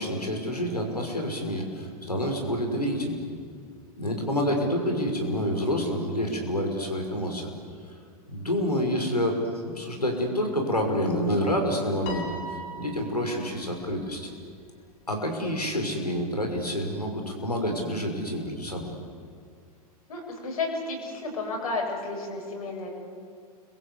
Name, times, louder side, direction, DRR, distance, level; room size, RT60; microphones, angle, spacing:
voice 1, 0.0-3.2 4.0-7.5 8.3-9.4 9.6-12.3 12.8-14.3 15.1-18.9, equal, 90° left, 2 dB, 5.5 m, -28 dB
Piano, 12.1-13.6, equal, 40° left, 3.4 m, -38 dB
voice 2, 20.1-22.9, left 3 dB, 65° left, 1 dB, 7.7 m, -32 dB
30.0 x 23.0 x 8.3 m, 2.2 s
figure-of-eight pair, 95°, 19 cm